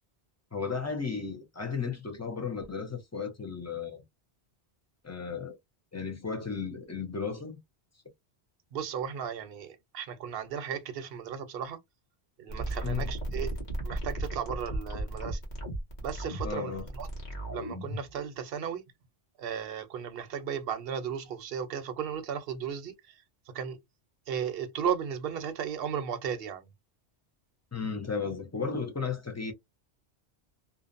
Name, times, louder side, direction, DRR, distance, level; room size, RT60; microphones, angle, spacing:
voice 1, 0.5-4.0 5.0-5.6 5.9-7.6 12.8-13.1 16.4-16.9 27.7-29.5, left 5 dB, 25° left, 0.3 m, -34 dB
voice 2, 8.7-11.8 12.4-13.5 13.8-15.4 16.0-17.1 17.5-18.8 19.4-23.8 24.3-26.7, right 8 dB, 65° right, 0.8 m, -35 dB
sound 1, 12.5-18.1, right 1 dB, 45° left, 1.1 m, -35 dB
2.6 x 2.1 x 2.4 m
omnidirectional pair, 1.1 m